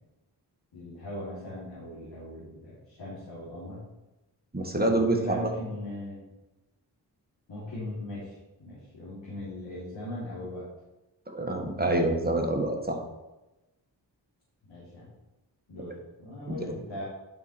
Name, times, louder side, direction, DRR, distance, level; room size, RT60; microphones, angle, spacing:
voice 1, 0.7-3.8 5.1-6.2 7.5-10.7 14.7-15.1 15.7-17.0, left 1 dB, 85° left, -9 dB, 3.5 m, -39 dB
voice 2, 4.5-5.2 11.3-13.0 16.5-16.6, right 1 dB, 20° right, 2 dB, 1.8 m, -26 dB
11.0 x 5.7 x 4.5 m, 1.0 s
cardioid pair, 60°, 43 cm